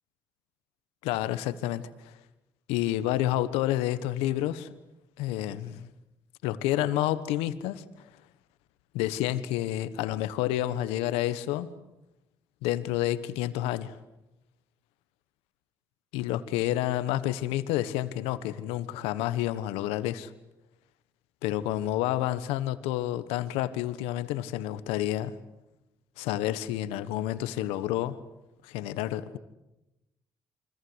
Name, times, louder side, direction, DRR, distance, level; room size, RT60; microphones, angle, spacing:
voice 1, 1.0-2.1 2.7-4.7 5.2-5.9 6.4-7.8 8.9-11.7 12.6-13.9 16.1-20.3 21.4-25.3 26.2-28.2 28.6-29.4, left 13 dB, 85° left, 1.3 m, -29 dB
28.5 x 24.5 x 8.1 m
supercardioid pair, 60°, 10 cm